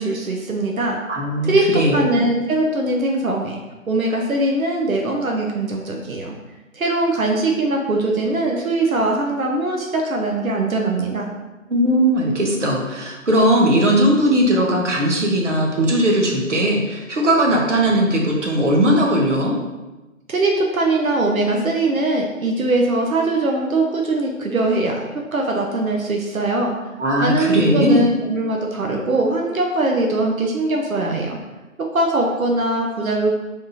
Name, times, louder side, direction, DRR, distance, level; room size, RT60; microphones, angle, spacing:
voice 1, 0.0-1.0 1.4-1.7 1.9-3.6 3.9-6.3 6.7-11.3 20.3-26.7 27.2-31.4 31.9-33.3, right 2 dB, 85° right, 1 dB, 0.8 m, -21 dB
voice 2, 1.1-2.0 11.7-19.5 27.0-28.0, right 1 dB, 60° right, -1 dB, 0.9 m, -18 dB
3.6 x 2.4 x 4.0 m, 1.1 s
figure-of-eight pair, 175°, 41 cm